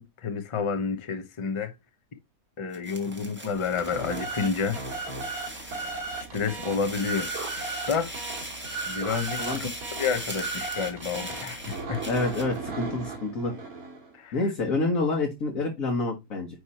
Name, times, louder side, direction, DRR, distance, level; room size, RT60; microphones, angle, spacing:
voice 1, 0.2-1.7 2.6-4.8 6.3-7.3 7.9-8.1 8.8-9.7 10.0-12.0 14.1-14.4, left 5 dB, 30° left, 0.6 m, -29 dB
sound 1, 2.7-12.6, right 1 dB, 5° right, 1.4 m, -40 dB
sound 2, 3.5-14.1, right 4 dB, 60° right, 2.4 m, -36 dB
voice 2, 12.1-13.5 14.3-16.5, left 2 dB, 55° left, 1.6 m, -27 dB
9.5 x 3.2 x 4.2 m
omnidirectional pair, 1.7 m